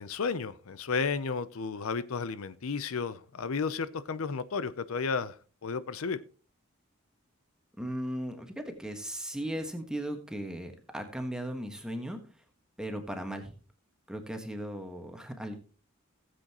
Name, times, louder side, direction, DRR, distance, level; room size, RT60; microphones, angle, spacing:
voice 1, 0.0-5.3 5.6-6.2, left 5 dB, 80° left, 0.6 m, -33 dB
voice 2, 7.8-12.2 12.8-13.5 14.1-15.6, right 1 dB, 5° right, 1.4 m, -37 dB
17.5 x 7.7 x 2.9 m
head